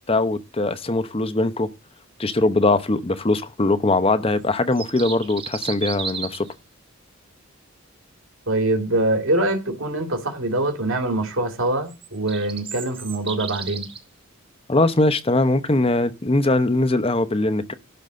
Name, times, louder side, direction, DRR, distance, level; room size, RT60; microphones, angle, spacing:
voice 1, 0.1-1.7 2.2-6.5 14.7-17.7, left 2 dB, 25° left, 0.8 m, -21 dB
sound 1, 4.5-6.5 11.9-14.0, right 6 dB, 25° right, 0.9 m, -34 dB
voice 2, 8.5-13.9, right 2 dB, 70° right, 2.3 m, -24 dB
12.0 x 4.1 x 7.5 m
head